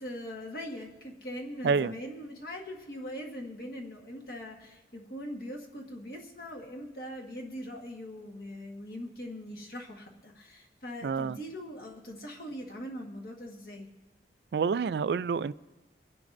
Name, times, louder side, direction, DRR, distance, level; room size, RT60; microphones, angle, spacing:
voice 1, 0.0-13.9, equal, 55° left, 0 dB, 1.4 m, -41 dB
voice 2, 11.0-11.4 14.5-15.5, right 5 dB, 70° right, 17 dB, 0.3 m, -28 dB
24.5 x 10.5 x 2.6 m, 1.2 s
head